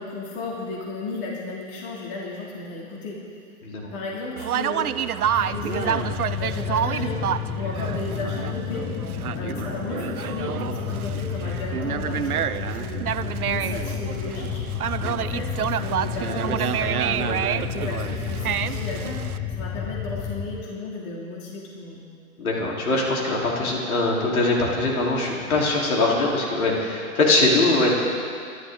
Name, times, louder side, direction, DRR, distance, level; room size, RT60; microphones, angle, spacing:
voice 1, 0.0-3.2 3.8-4.9 5.3-8.9 9.4-13.1 13.4-14.6 15.2-22.1, left 3 dB, 40° left, -4 dB, 2.9 m, -34 dB
Conversation, 4.4-19.4, right 9 dB, 90° right, 0.7 m, -28 dB
sound 1, 5.2-20.6, left 8 dB, 20° left, 0.6 m, -31 dB
voice 2, 22.4-27.9, left 2 dB, 75° left, -3 dB, 4.1 m, -22 dB
24.0 x 12.5 x 3.9 m, 2.3 s
hypercardioid pair, 125°, 43 cm